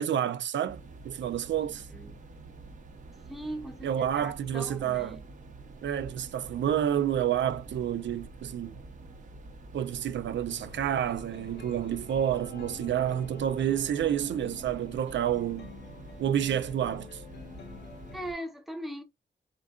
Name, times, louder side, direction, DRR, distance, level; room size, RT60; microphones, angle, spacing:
voice 1, 0.0-1.9 3.8-5.2 5.8-8.8 9.7-15.7 16.2-17.2, right 10 dB, 85° right, 0.5 m, -29 dB
sound 1, 0.7-18.3, right 3 dB, 45° right, 0.7 m, -47 dB
voice 2, 1.7-2.2 3.3-5.2 18.1-19.0, right 1 dB, ahead, 0.7 m, -40 dB
sound 2, 10.5-18.2, left 6 dB, 70° left, 1.0 m, -48 dB
4.7 x 3.7 x 2.3 m
wide cardioid pair, 180°, 18 cm